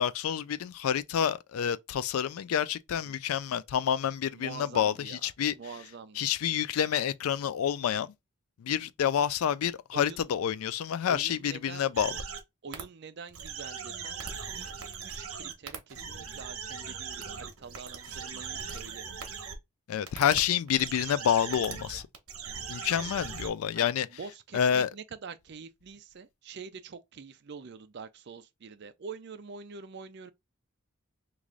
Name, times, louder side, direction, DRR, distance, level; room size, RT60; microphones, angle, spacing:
voice 1, 0.0-5.5 6.2-8.1 8.6-12.1 19.9-22.0 22.7-24.1 24.5-24.9, left 9 dB, 75° left, 0.3 m, -28 dB
voice 2, 4.3-6.3 9.6-10.2 11.1-11.8 12.6-14.2 14.5-14.7 15.0-19.0 23.7-30.3, right 5 dB, 50° right, 0.4 m, -45 dB
sound 1, 11.9-12.4 12.7-12.8 13.3-19.6 20.1-20.4 20.7-23.5, right 6 dB, 75° right, 0.9 m, -39 dB
3.1 x 2.5 x 3.6 m
head